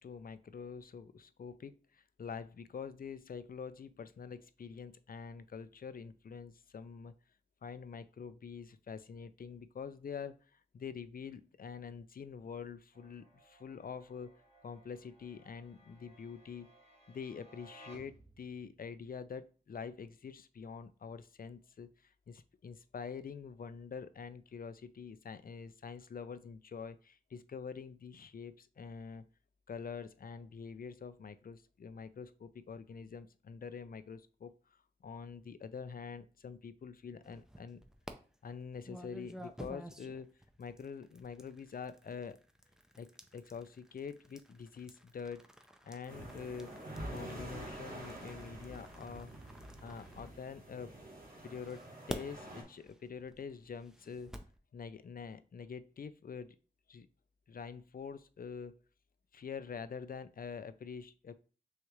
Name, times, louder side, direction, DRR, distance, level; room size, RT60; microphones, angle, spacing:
voice 1, 0.0-7.1 7.6-14.3 14.6-16.7 17.1-29.3 29.7-34.5 35.0-37.8 38.4-40.3 40.6-42.4 43.0-43.1 43.3-45.4 45.8-46.7 47.1-49.3 49.8-50.9 51.4-54.3 54.7-56.6 56.9-57.1 57.5-58.7 59.3-61.3, left 6 dB, 60° left, 13 dB, 0.4 m, -46 dB
sound 1, 12.9-18.8, right 1 dB, 45° right, 1.4 m, -61 dB
sound 2, 37.2-38.1 38.8-50.9 51.5-54.6, equal, 5° right, 0.5 m, -51 dB
sound 3, 46.1-52.6, right 1 dB, 60° right, 1.5 m, -47 dB
6.2 x 2.4 x 3.1 m, 0.37 s
wide cardioid pair, 60°, 17 cm